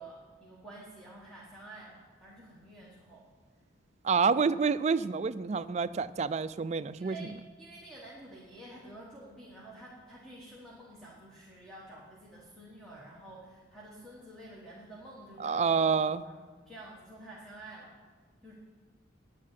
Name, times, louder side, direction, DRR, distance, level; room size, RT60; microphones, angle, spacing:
voice 1, 0.0-3.3 7.0-7.3 7.6-16.0 16.2-16.4 16.7-18.0 18.4-18.6, right 1 dB, 5° left, -6 dB, 1.4 m, -49 dB
voice 2, 4.0-7.2 15.4-16.2, right 5 dB, 35° right, 13 dB, 0.3 m, -28 dB
9.7 x 9.5 x 7.4 m, 1.5 s
head